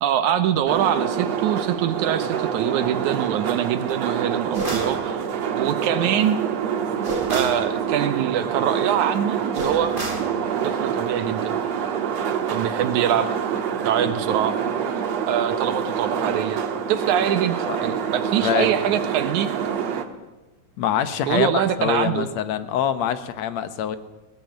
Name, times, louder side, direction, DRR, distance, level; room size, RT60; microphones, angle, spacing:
voice 1, 0.0-5.3 5.5-6.4 7.3-9.9 10.6-11.5 12.5-13.3 13.8-14.6 15.3-16.6 16.9-17.6 17.8-19.5 21.3-22.3, right 9 dB, 85° right, 9 dB, 2.4 m, -24 dB
sound 1, 0.7-20.0, right 8 dB, 65° right, 2.6 m, -26 dB
sound 2, 4.5-5.0 7.0-7.6 9.5-10.3, right 1 dB, 15° right, 3.4 m, -29 dB
voice 2, 20.8-24.0, left 9 dB, 70° left, 12 dB, 2.2 m, -24 dB
19.0 x 18.0 x 9.2 m, 1.0 s
omnidirectional pair, 3.3 m